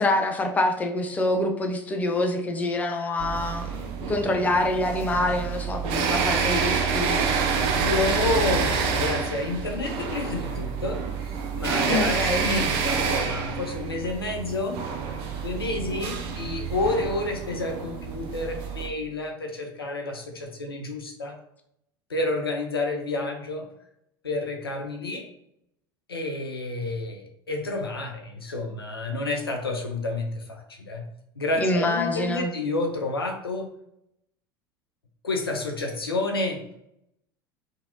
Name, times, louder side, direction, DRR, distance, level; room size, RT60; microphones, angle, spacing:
voice 1, 0.0-3.8 4.1-7.2 11.9-12.5 31.6-32.5, left 2 dB, 15° left, 4 dB, 0.4 m, -26 dB
sound 1, 3.2-18.9, right 5 dB, 50° right, 0.5 m, -28 dB
voice 2, 7.8-11.0 11.5-14.8 15.4-21.4 22.1-23.7 24.2-25.3 26.1-31.0 31.4-33.7 35.2-36.6, left 2 dB, 85° left, 2 dB, 0.5 m, -29 dB
2.7 x 2.7 x 2.8 m, 0.75 s
figure-of-eight pair, 70°, 12 cm